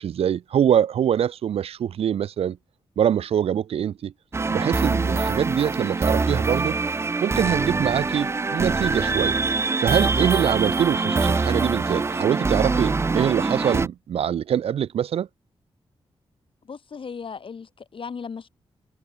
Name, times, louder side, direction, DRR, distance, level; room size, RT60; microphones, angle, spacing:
voice 1, 0.0-2.6 3.0-4.1 4.5-6.8 7.2-9.3 9.8-15.3, right 9 dB, 80° right, 0.5 m, -24 dB
sound 1, 4.3-13.9, right 3 dB, 25° right, 0.5 m, -24 dB
voice 2, 16.6-18.5, left 5 dB, 60° left, 6.5 m, -36 dB
cardioid pair, 70°, 10 cm